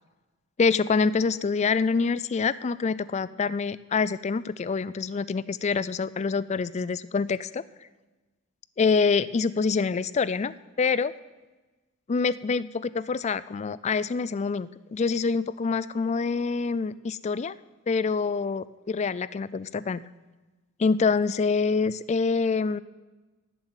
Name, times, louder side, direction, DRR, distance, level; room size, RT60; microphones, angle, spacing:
voice 1, 0.6-7.6 8.8-11.1 12.1-17.5 17.9-20.0 20.8-22.8, left 4 dB, 30° left, 18 dB, 0.3 m, -26 dB
11.5 x 7.6 x 8.9 m, 1.2 s
head